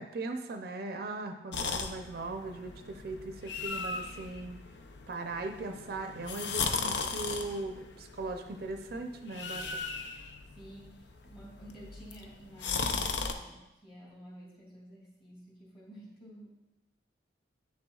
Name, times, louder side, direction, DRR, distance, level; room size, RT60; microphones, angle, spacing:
voice 1, 0.0-4.6 5.1-9.8, right 2 dB, 55° right, 5 dB, 0.5 m, -39 dB
sound 1, 1.5-13.3, left 4 dB, 70° left, 0.5 m, -37 dB
voice 2, 10.6-16.5, right 1 dB, 30° left, -4 dB, 2.5 m, -51 dB
8.8 x 6.8 x 2.3 m, 0.97 s
head